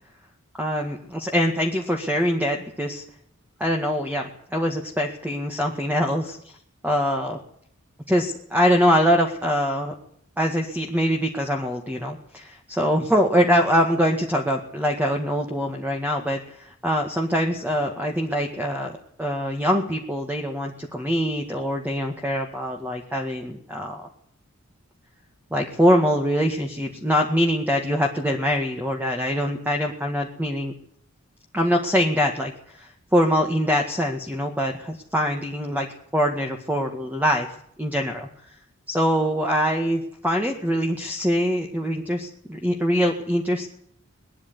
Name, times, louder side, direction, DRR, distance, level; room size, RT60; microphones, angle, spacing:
voice 1, 0.6-3.0 3.6-6.4 6.8-7.4 8.1-9.9 10.4-24.1 25.5-30.7 31.5-32.5 32.8-35.9 36.1-37.5 37.8-38.3 38.9-43.7, equal, 10° right, 2 dB, 1.9 m, -23 dB
20.5 x 13.5 x 9.7 m, 0.65 s
head